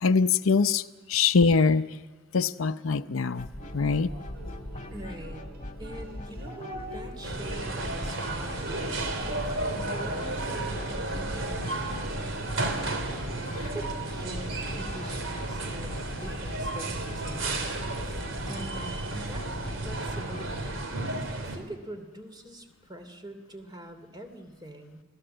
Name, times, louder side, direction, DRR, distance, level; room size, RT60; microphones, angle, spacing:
voice 1, 0.0-1.9 2.3-3.5 3.7-4.1, left 5 dB, 80° left, 0.7 m, -23 dB
sound 1, 3.4-20.9, left 1 dB, 35° left, 1.6 m, -40 dB
sound 2, 3.6-13.3, right 2 dB, 50° right, 4.5 m, -46 dB
voice 2, 4.9-5.5 5.8-12.2 12.7-12.9 13.6-18.2 18.5-19.5 19.8-20.8 21.4-25.0, right 1 dB, 20° right, 2.7 m, -44 dB
sound 3, 7.2-21.6, right 2 dB, 65° right, 3.8 m, -33 dB
28.0 x 17.5 x 7.8 m
head